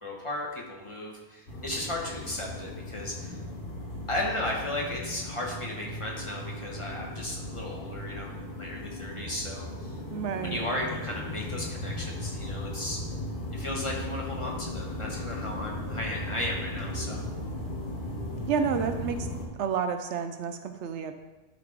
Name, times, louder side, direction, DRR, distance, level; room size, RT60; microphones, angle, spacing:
voice 1, 0.0-3.4 4.1-10.0 10.4-13.0 13.5-17.2, left 1 dB, 25° left, -2 dB, 1.1 m, -35 dB
sound 1, 1.5-19.4, left 1 dB, 70° left, 2.5 m, -37 dB
voice 2, 10.1-10.6 18.5-19.3 19.6-21.1, right 7 dB, 75° right, 8 dB, 0.9 m, -30 dB
11.5 x 4.0 x 3.3 m, 1.1 s
omnidirectional pair, 1.2 m